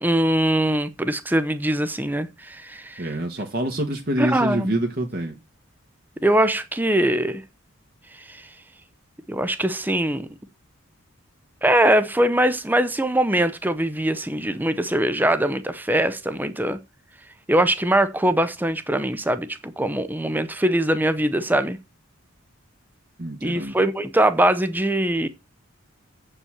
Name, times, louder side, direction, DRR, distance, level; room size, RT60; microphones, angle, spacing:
voice 1, 0.0-3.1 4.2-4.7 6.2-7.4 8.2-8.5 9.3-10.3 11.6-16.8 17.5-21.8 23.4-25.3, right 1 dB, 10° right, 0.7 m, -22 dB
voice 2, 3.0-5.4 23.2-23.8, right 1 dB, 45° right, 1.4 m, -26 dB
8.0 x 5.5 x 7.2 m
head